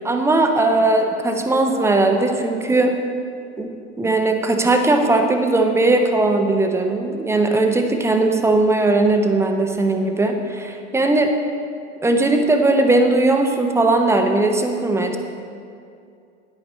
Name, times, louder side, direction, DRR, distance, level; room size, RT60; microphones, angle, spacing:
voice 1, 0.0-3.0 3.6-3.7 4.0-11.4 12.0-15.2, right 2 dB, 5° right, 4 dB, 0.7 m, -18 dB
10.5 x 8.2 x 4.2 m, 2.4 s
figure-of-eight pair, 80°, 35 cm